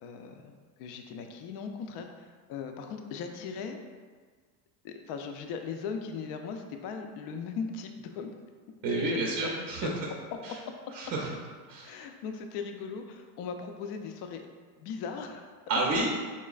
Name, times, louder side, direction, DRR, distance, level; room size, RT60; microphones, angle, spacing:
voice 1, 0.0-3.8 4.8-8.3 9.0-10.0 11.8-14.4 14.8-15.5, left 5 dB, 60° left, 5 dB, 0.5 m, -39 dB
voice 2, 8.8-9.9 10.4-10.5 10.9-11.3 11.7-11.9 15.7-16.2, right 2 dB, 40° right, -1 dB, 0.5 m, -29 dB
4.3 x 2.9 x 2.3 m, 1.5 s
supercardioid pair, 105°, 45 cm